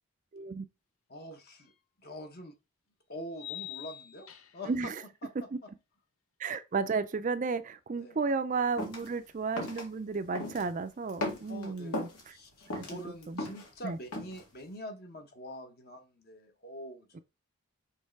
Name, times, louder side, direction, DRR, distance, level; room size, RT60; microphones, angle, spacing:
voice 1, 0.3-0.7 4.7-5.0 6.4-12.3 12.7-12.8 13.3-13.4 13.8-14.0, right 4 dB, 35° right, 0.4 m, -33 dB
voice 2, 1.1-1.7 2.0-2.5 3.1-4.9 5.2-5.7 8.0-8.2 11.5-17.2, equal, 45° left, 1.1 m, -45 dB
sound 1, 1.7-1.8 3.3-4.8, left 15 dB, 75° left, 0.7 m, -44 dB
sound 2, 8.8-9.1 9.6-9.8 10.3-10.7 11.1-12.2 12.6-13.7 14.1-14.4, left 1 dB, 90° left, 2.0 m, -36 dB
6.4 x 3.2 x 4.6 m
head